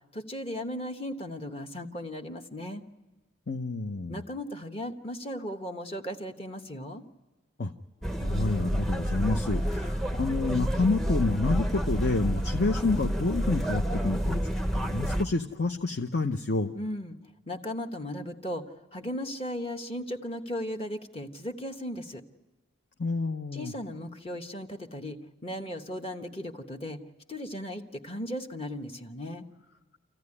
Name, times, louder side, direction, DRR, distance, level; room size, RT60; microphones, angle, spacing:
voice 1, 0.1-2.8 4.1-7.0 16.7-17.2 17.5-22.2 23.5-27.0 27.3-29.4, equal, 30° left, 4 dB, 1.1 m, -36 dB
voice 2, 3.5-4.2 7.6-7.7 8.2-14.4 14.7-16.7 23.0-23.7, left 3 dB, 50° left, 4 dB, 0.8 m, -29 dB
sound 1, 8.0-15.2, equal, ahead, 0.7 m, -29 dB
27.5 x 15.0 x 9.8 m, 1.2 s
head